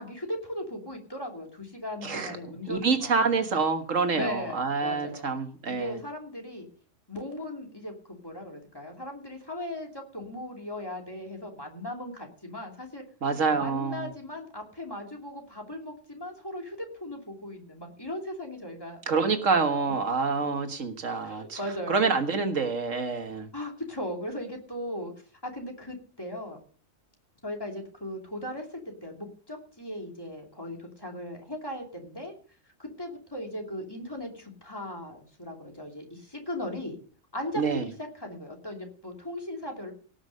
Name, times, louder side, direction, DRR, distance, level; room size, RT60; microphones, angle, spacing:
voice 1, 0.0-3.4 4.1-5.3 5.7-6.7 7.1-13.0 13.5-19.9 21.2-22.1 23.5-25.1 25.4-26.6 27.4-32.3 32.8-37.0 37.3-39.9, left 1 dB, 20° left, 1 dB, 3.0 m, -38 dB
voice 2, 2.0-2.4 2.7-5.9 13.2-14.1 19.1-21.6 21.9-23.5 37.6-37.9, right 4 dB, 80° right, 7 dB, 1.9 m, -27 dB
18.0 x 6.2 x 6.6 m, 0.43 s
omnidirectional pair, 1.3 m